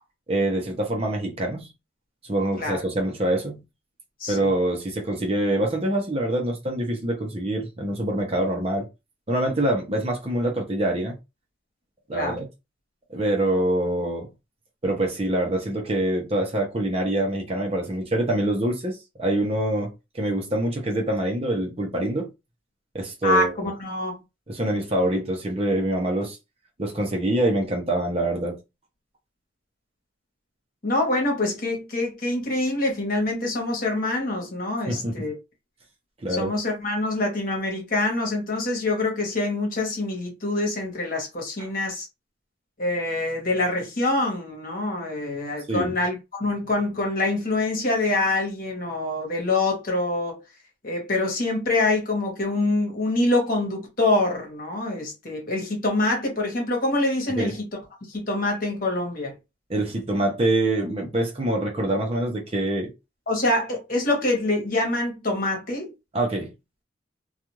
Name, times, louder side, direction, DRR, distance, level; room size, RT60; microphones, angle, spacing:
voice 1, 0.3-1.7 2.3-3.6 4.3-8.9 9.3-11.1 12.1-12.5 13.1-14.3 14.8-19.9 20.1-22.3 22.9-23.7 24.5-26.4 26.8-28.6 34.9-35.3 36.2-36.5 41.6-41.7 45.7-45.9 57.3-57.5 59.7-62.9 66.1-66.5, right 1 dB, 30° right, 0.7 m, -25 dB
voice 2, 23.2-24.1 30.8-35.3 36.3-42.1 42.8-50.4 50.8-57.6 58.1-59.4 63.3-65.9, left 2 dB, 50° left, 1.1 m, -25 dB
2.5 x 2.4 x 3.0 m
head